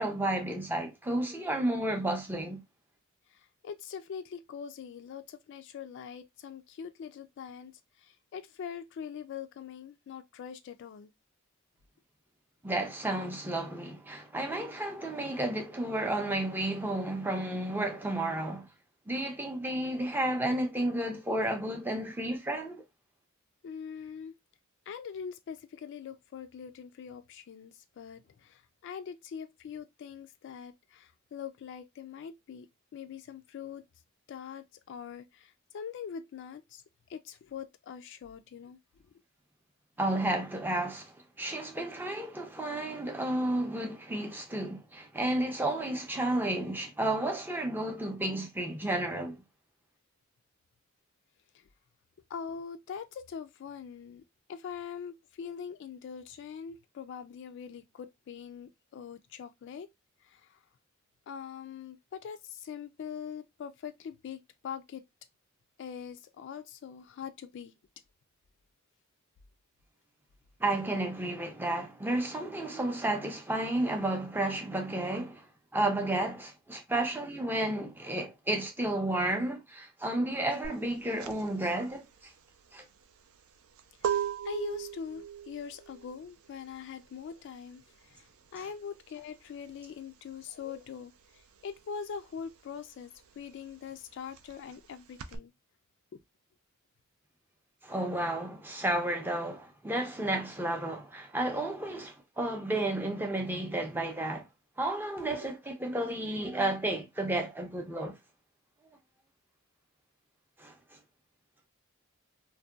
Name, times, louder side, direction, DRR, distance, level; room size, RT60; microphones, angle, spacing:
voice 1, 0.0-2.6 12.6-18.7 19.1-22.8 40.0-49.4 70.6-75.4 75.7-82.0 82.7-82.8 88.6-88.7 97.8-104.4 104.8-108.2 110.6-110.7, right 1 dB, 10° right, 0.5 m, -32 dB
voice 2, 3.6-7.7 8.0-11.1 23.6-24.3 24.9-32.7 32.9-33.8 34.3-36.8 37.1-38.8 52.3-54.2 54.5-59.9 60.2-60.4 61.3-65.0 65.8-67.7 84.4-87.8 88.1-91.1 91.6-93.1 93.4-95.5 96.1-96.2 105.3-105.5, left 7 dB, 60° left, 0.3 m, -43 dB
sound 1, 80.6-90.9 91.2-95.4, right 9 dB, 80° right, 0.4 m, -38 dB
2.7 x 2.1 x 2.3 m
head